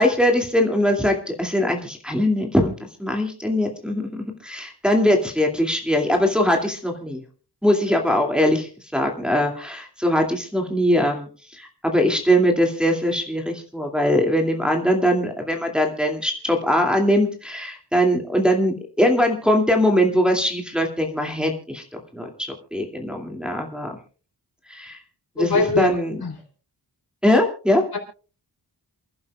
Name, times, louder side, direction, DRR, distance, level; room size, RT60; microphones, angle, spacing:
voice 1, 0.0-2.7 3.0-7.2 7.6-22.3 22.7-23.9 24.7-25.0 25.4-26.2 27.2-27.8, equal, ahead, 1 dB, 2.5 m, -21 dB
voice 2, 25.4-26.3 27.9-28.0, left 4 dB, 65° left, 2 dB, 4.3 m, -23 dB
28.5 x 11.0 x 2.4 m, 0.38 s
wide cardioid pair, 80°, 40 cm